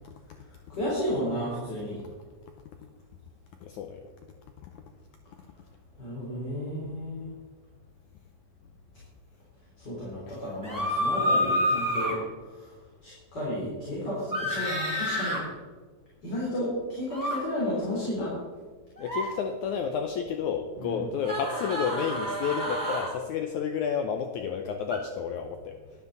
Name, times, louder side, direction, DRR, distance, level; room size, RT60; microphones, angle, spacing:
voice 1, 0.7-2.0 6.0-7.2 9.8-12.2 12.5-12.7 13.0-15.4 16.2-18.4 20.8-21.0, left 1 dB, 30° left, -7 dB, 4.0 m, -32 dB
voice 2, 3.6-4.0 4.6-4.7 10.3-10.4 19.0-25.8, left 7 dB, 75° left, 5 dB, 1.9 m, -31 dB
sound 1, 10.6-12.1 14.3-15.4 17.1-17.4 19.0-19.3 21.2-23.1 24.9-25.0, equal, 5° right, 2.6 m, -28 dB
13.5 x 12.0 x 4.0 m, 1.4 s
omnidirectional pair, 4.0 m